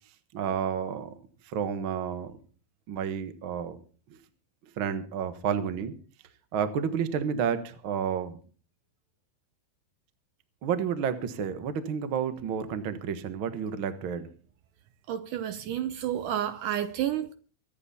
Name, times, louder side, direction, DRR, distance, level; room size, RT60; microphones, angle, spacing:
voice 1, 0.3-1.1 1.5-2.4 2.9-3.8 4.8-5.9 6.5-8.4 10.6-14.3, right 7 dB, 55° right, 1.4 m, -30 dB
voice 2, 15.1-17.3, right 11 dB, 70° right, 2.1 m, -30 dB
23.5 x 9.6 x 4.2 m
omnidirectional pair, 4.3 m